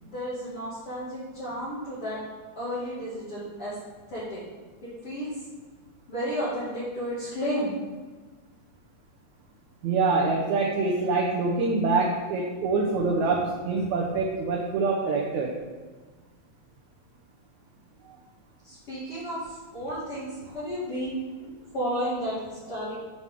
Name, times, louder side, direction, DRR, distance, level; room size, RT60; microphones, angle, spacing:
voice 1, 0.0-2.2 2.6-3.7 4.1-4.4 5.0-5.3 6.1-7.7 12.6-12.8 13.2-13.4 18.6-21.2 21.4-23.0, equal, 45° left, -11 dB, 3.0 m, -32 dB
voice 2, 9.8-15.5 18.1-18.2, right 3 dB, 70° right, -2 dB, 2.1 m, -25 dB
9.3 x 5.6 x 3.7 m, 1.3 s
omnidirectional pair, 3.7 m